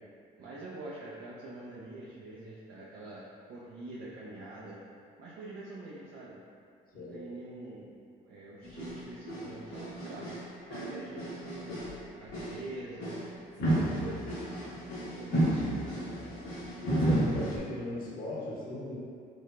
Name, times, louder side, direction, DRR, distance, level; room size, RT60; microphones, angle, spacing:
voice 1, 0.4-4.8 5.2-6.4 6.9-7.9 8.2-10.3 10.7-13.2 13.6-14.2 15.1-16.5, right 2 dB, 65° right, -7 dB, 0.6 m, -45 dB
sound 1, 8.6-9.0 9.3-10.4 10.7-12.0 12.3-12.6 13.0-13.2 13.6-17.6, right 1 dB, 90° left, 1.4 m, -32 dB
voice 2, 16.8-19.0, left 1 dB, 50° left, -7 dB, 0.9 m, -37 dB
4.7 x 2.2 x 2.4 m, 2.3 s
supercardioid pair, 80°, 19 cm